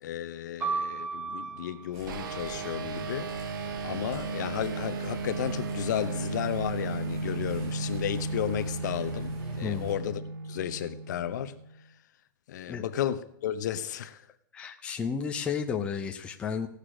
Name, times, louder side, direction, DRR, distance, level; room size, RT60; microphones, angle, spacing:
voice 1, 0.0-3.5 3.8-10.2 10.5-11.6 12.5-14.2, left 11 dB, 50° left, 0.8 m, -33 dB
sound 1, 0.6-4.4 5.3-6.0, right 5 dB, 10° right, 0.8 m, -38 dB
sound 2, 1.9-9.9, right 3 dB, 40° right, 5.5 m, -46 dB
sound 3, 2.1-11.8, right 3 dB, 60° right, 0.9 m, -35 dB
voice 2, 9.6-9.9 12.7-12.8 14.5-16.7, left 6 dB, 10° left, 0.5 m, -32 dB
17.0 x 6.7 x 6.2 m
hypercardioid pair, 160°, 12 cm